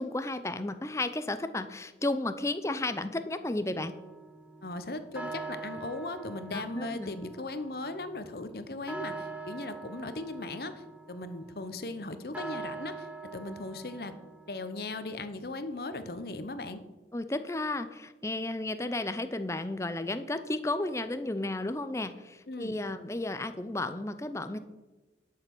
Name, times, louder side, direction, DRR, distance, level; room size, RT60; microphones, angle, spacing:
voice 1, 0.0-3.9 6.5-7.1 17.1-24.6, left 2 dB, 15° left, 10 dB, 0.6 m, -33 dB
sound 1, 3.8-15.0, right 3 dB, 10° right, 0.9 m, -44 dB
voice 2, 4.6-14.1 14.5-16.8 22.5-22.8, left 2 dB, 60° left, 10 dB, 0.9 m, -38 dB
11.0 x 6.8 x 6.1 m, 1.1 s
head